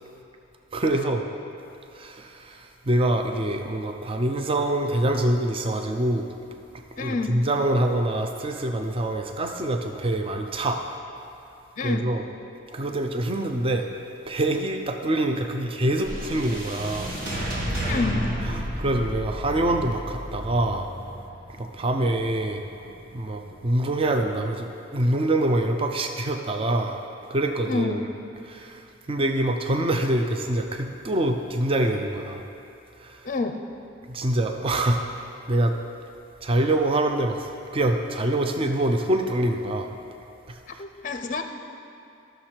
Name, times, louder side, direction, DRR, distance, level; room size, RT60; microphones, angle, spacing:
voice 1, 0.7-1.2 1.9-6.3 7.0-10.8 11.8-12.3 12.7-13.9 14.3-17.1 18.4-20.9 21.5-22.6 23.1-27.0 27.3-28.1 28.4-32.4 33.0-33.2 34.1-35.0 35.5-35.8 36.4-39.9 40.7-40.8, right 1 dB, 30° right, 4 dB, 0.5 m, -25 dB
voice 2, 7.0-7.4 11.8-12.0 17.9-18.2 27.7-28.1 33.2-33.6 40.8-41.4, left 3 dB, 40° left, 6 dB, 0.5 m, -28 dB
sound 1, 16.0-24.4, equal, 50° right, 1.6 m, -32 dB
13.0 x 6.5 x 4.4 m, 2.6 s
head